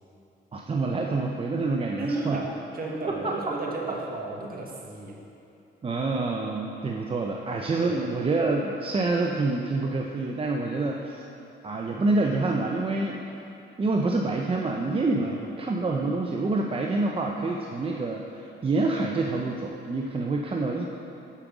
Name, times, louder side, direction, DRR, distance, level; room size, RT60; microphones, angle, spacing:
voice 1, 0.5-2.4 3.1-3.3 5.8-11.3 11.6-13.2 13.8-20.9, right 3 dB, 30° right, 0 dB, 0.6 m, -27 dB
voice 2, 2.0-5.2 7.8-8.0 15.2-15.4, right 3 dB, 50° right, -1 dB, 1.6 m, -33 dB
8.4 x 5.3 x 6.0 m, 2.8 s
cardioid pair, 90°, 20 cm